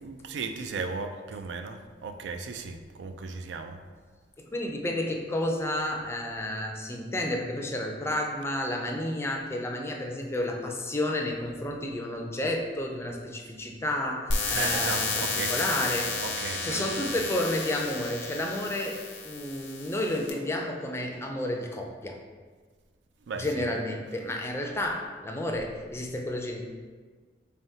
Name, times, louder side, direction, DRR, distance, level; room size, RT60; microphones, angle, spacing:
voice 1, 0.0-3.8 14.5-15.5 16.2-17.0 23.3-23.7, right 4 dB, 85° right, 6 dB, 0.4 m, -36 dB
voice 2, 4.4-16.2 16.6-22.2 23.3-26.6, left 1 dB, 15° left, 2 dB, 0.4 m, -31 dB
sound 1, 14.3-20.3, left 3 dB, 80° left, 0.6 m, -32 dB
3.7 x 3.5 x 2.7 m, 1.5 s
head